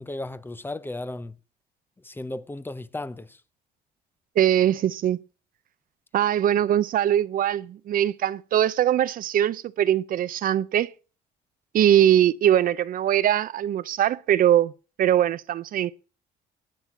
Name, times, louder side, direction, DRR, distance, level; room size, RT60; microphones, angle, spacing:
voice 1, 0.0-1.3 2.0-3.4, left 2 dB, 10° left, 0.7 m, -35 dB
voice 2, 4.4-5.2 6.1-10.9 11.7-14.7 15.0-15.9, right 11 dB, 55° right, 0.7 m, -21 dB
19.5 x 8.3 x 5.9 m
cardioid pair, 110°, 17 cm